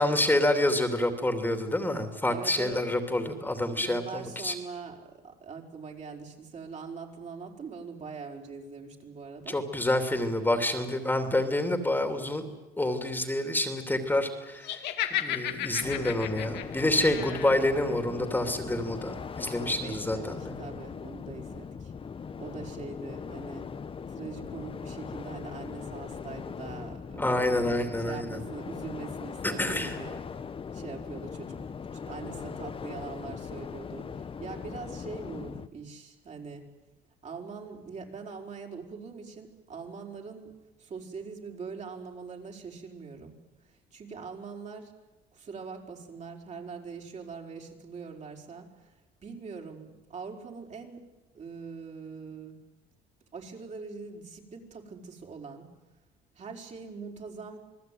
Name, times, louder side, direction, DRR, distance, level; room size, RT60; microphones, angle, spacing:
voice 1, 0.0-4.5 9.5-12.4 12.8-20.5 27.2-28.4 29.4-30.0, left 1 dB, 10° left, 6 dB, 3.0 m, -28 dB
voice 2, 2.3-2.8 3.7-9.6 19.3-21.9 22.4-23.6 24.1-30.2 30.7-36.7 37.2-40.5 40.8-43.3 43.6-44.9 45.3-48.9 49.2-51.0 51.3-52.6 53.3-55.7 56.3-57.6, right 5 dB, 45° right, 1 dB, 5.0 m, -42 dB
Laughter, 14.6-17.6, left 11 dB, 85° left, 2.4 m, -33 dB
sound 1, 15.8-35.7, left 6 dB, 30° left, 1.1 m, -40 dB
28.0 x 19.5 x 9.4 m, 1.1 s
cardioid pair, 110°, 17 cm